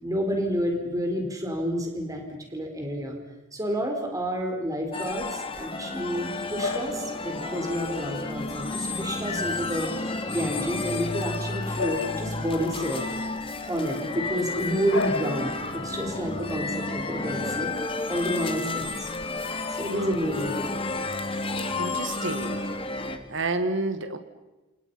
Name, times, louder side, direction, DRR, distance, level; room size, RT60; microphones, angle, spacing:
voice 1, 0.0-3.2 3.5-9.9 10.3-13.2 13.7-17.7 18.1-19.1 19.7-20.6, equal, 15° right, 2 dB, 4.7 m, -29 dB
sound 1, 4.9-23.2, left 3 dB, 25° left, 2.3 m, -32 dB
Bark / Bird vocalization bird call bird song, 5.9-23.5, left 4 dB, 65° left, 2.4 m, -40 dB
voice 2, 19.9-20.3 21.8-22.6 23.3-24.2, right 2 dB, 60° right, 9 dB, 1.9 m, -29 dB
28.5 x 28.0 x 5.8 m, 1.1 s
head